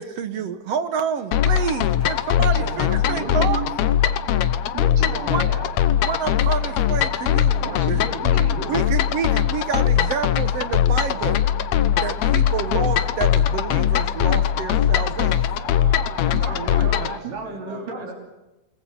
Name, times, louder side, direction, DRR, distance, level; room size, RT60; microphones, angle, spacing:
voice 1, 0.0-3.6 5.3-5.5 6.0-8.0 8.7-11.4 12.0-15.6 17.7-17.8, right 7 dB, 65° right, 10 dB, 1.8 m, -28 dB
sound 1, 1.3-17.2, left 9 dB, 70° left, 2.0 m, -21 dB
voice 2, 2.4-3.7 4.7-5.7 7.6-8.8 16.3-18.1, right 4 dB, 85° right, 1 dB, 5.6 m, -33 dB
voice 3, 15.5-18.1, right 1 dB, 30° right, -1 dB, 7.0 m, -40 dB
28.5 x 20.0 x 7.3 m, 1.0 s
omnidirectional pair, 3.7 m